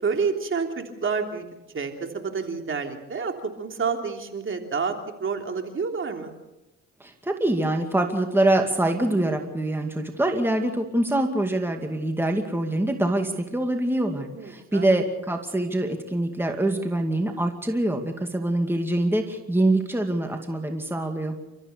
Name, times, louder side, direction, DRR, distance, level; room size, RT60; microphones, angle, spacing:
voice 1, 0.0-1.5 1.7-6.3 14.3-14.9, right 5 dB, 40° right, 4 dB, 3.2 m, -29 dB
voice 2, 7.0-21.4, right 1 dB, 5° right, 4 dB, 2.3 m, -24 dB
29.5 x 14.0 x 6.9 m, 1.0 s
cardioid pair, 90°, 30 cm